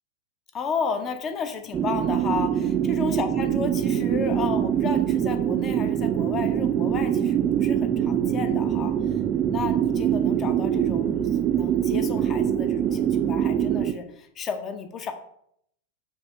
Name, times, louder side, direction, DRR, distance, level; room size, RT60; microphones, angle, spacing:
voice 1, 0.5-9.2 9.5-15.1, left 5 dB, 30° left, 7 dB, 0.5 m, -33 dB
sound 1, 1.7-13.9, right 9 dB, 30° right, 0.3 m, -24 dB
5.2 x 2.8 x 2.9 m, 0.71 s
figure-of-eight pair, 90°, 0 cm